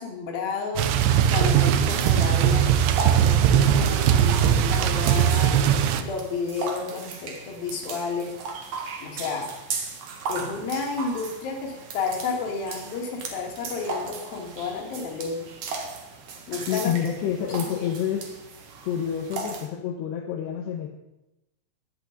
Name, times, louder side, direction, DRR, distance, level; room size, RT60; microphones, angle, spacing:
voice 1, 0.0-8.3 9.0-9.5 10.3-15.4 16.5-16.9 17.5-17.9, left 5 dB, 55° left, 1 dB, 3.8 m, -32 dB
sound 1, 0.8-6.0, right 9 dB, 75° right, 3.1 m, -20 dB
sound 2, 1.5-19.7, right 4 dB, 55° right, 2.7 m, -37 dB
voice 2, 16.7-18.3 18.8-20.9, left 9 dB, 70° left, 2 dB, 2.8 m, -28 dB
22.5 x 8.8 x 5.3 m, 0.94 s
omnidirectional pair, 5.8 m